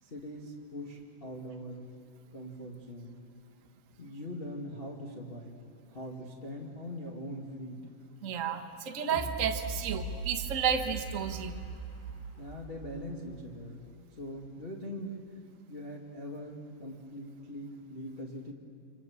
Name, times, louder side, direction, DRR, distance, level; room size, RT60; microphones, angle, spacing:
voice 1, 0.0-1.9 2.3-3.2 4.0-5.6 5.9-7.8 12.4-13.8 14.2-15.2 15.7-18.5, equal, 20° left, -2 dB, 1.7 m, -42 dB
voice 2, 8.2-11.6, right 7 dB, 75° right, 4 dB, 0.7 m, -32 dB
sound 1, 9.1-14.0 14.4-14.5, right 3 dB, 20° right, 1.9 m, -40 dB
28.5 x 26.5 x 7.2 m, 2.5 s
omnidirectional pair, 3.9 m